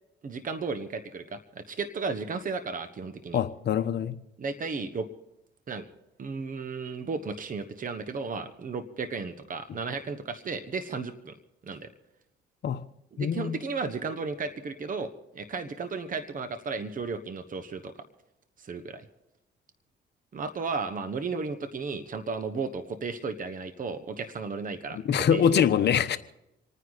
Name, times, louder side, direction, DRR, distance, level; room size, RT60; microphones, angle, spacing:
voice 1, 0.2-3.4 4.4-5.1 5.7-5.8 6.2-11.3 11.6-11.9 13.1-17.9 18.6-19.0 20.3-25.6 25.9-26.0, right 4 dB, 45° right, 10 dB, 1.2 m, -34 dB
voice 2, 3.3-4.1 12.6-12.8 13.2-13.6 25.0-26.2, left 8 dB, 60° left, 10 dB, 1.0 m, -24 dB
27.5 x 9.8 x 4.1 m, 0.87 s
cardioid pair, 90°, 20 cm